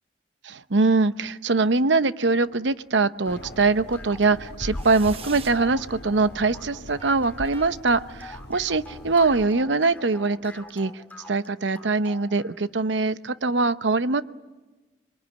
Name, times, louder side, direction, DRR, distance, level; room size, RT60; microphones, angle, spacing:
voice 1, 0.4-10.9 11.3-14.2, right 3 dB, 85° right, 13 dB, 0.8 m, -23 dB
sound 1, 2.4-3.0 4.7-5.6 7.0-8.0, right 6 dB, 30° right, 1.0 m, -44 dB
sound 2, 3.2-12.6, left 2 dB, 10° left, 2.1 m, -46 dB
sound 3, 3.3-9.5, left 1 dB, 65° left, 1.5 m, -40 dB
25.5 x 23.0 x 9.5 m, 1.2 s
head